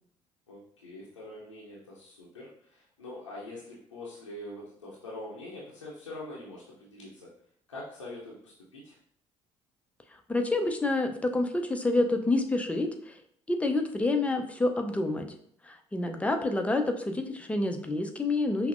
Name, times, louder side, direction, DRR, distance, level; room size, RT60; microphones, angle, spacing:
voice 1, 0.5-7.3 7.7-9.0, left 1 dB, 90° left, -6 dB, 0.6 m, -44 dB
voice 2, 10.3-13.2 13.5-15.4 15.6-18.7, left 2 dB, 10° left, 4 dB, 0.5 m, -28 dB
5.7 x 2.0 x 2.5 m, 0.65 s
figure-of-eight pair, 55°, 15 cm